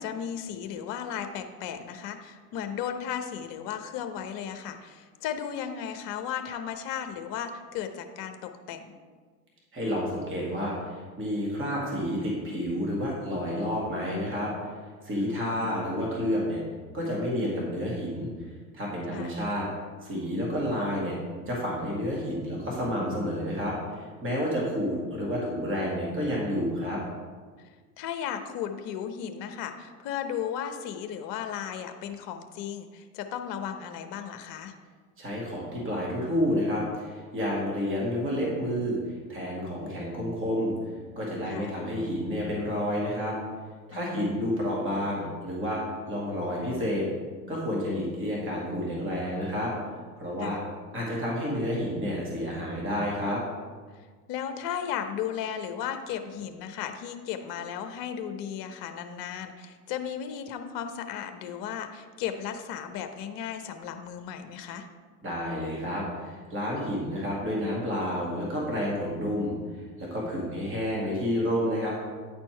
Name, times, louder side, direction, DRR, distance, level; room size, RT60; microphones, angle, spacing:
voice 1, 0.0-9.0 15.1-15.8 19.1-19.3 28.0-34.7 41.5-41.7 43.9-44.5 50.4-50.6 54.0-64.9, left 8 dB, 45° left, 7 dB, 0.8 m, -35 dB
voice 2, 9.7-14.5 15.0-16.6 16.9-18.3 18.7-19.7 20.0-21.2 21.5-27.0 35.2-40.7 41.2-43.4 43.9-45.8 46.1-47.1 47.5-49.7 50.2-50.6 50.9-53.4 65.2-71.9, equal, 25° right, -3 dB, 2.2 m, -30 dB
9.5 x 4.4 x 4.5 m, 1.5 s
hypercardioid pair, 85°, 47 cm